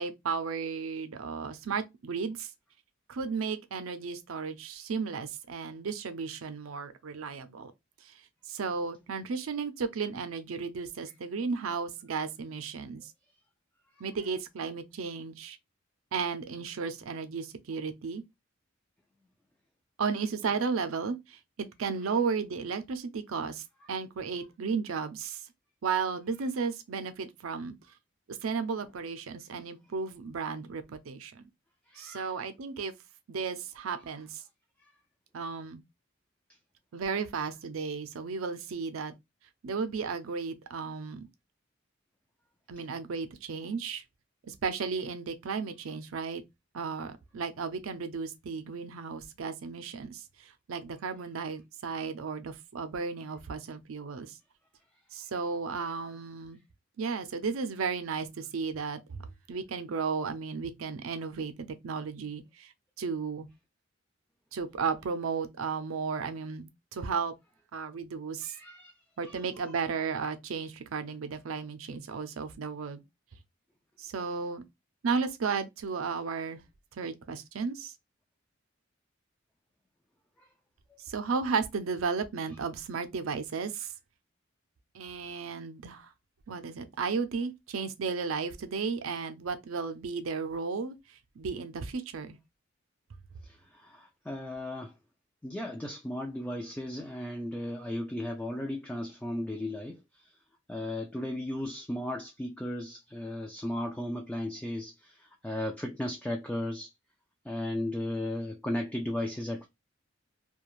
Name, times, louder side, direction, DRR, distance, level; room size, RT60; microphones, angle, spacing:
voice 1, 0.0-2.5 3.1-7.7 8.0-8.1 8.5-13.1 14.0-15.6 16.1-18.2 20.0-25.5 25.8-27.8 28.3-31.5 32.0-32.9 33.3-34.4 35.3-35.8 36.9-39.1 39.6-41.3 42.7-44.0 44.5-46.4 46.7-54.4 55.1-56.6 57.0-62.7 63.0-63.5 64.5-67.3 67.7-68.5 69.2-73.0 74.0-74.6 75.0-76.6 76.9-77.9 81.0-83.9 84.9-86.1 86.5-92.4, right 5 dB, 85° right, 0.5 m, -34 dB
voice 2, 31.9-32.3 68.4-68.9 69.2-69.4 93.4-94.9 95.4-100.0 100.7-106.9 107.5-109.7, left 1 dB, 5° left, 0.3 m, -35 dB
2.4 x 2.2 x 2.9 m
head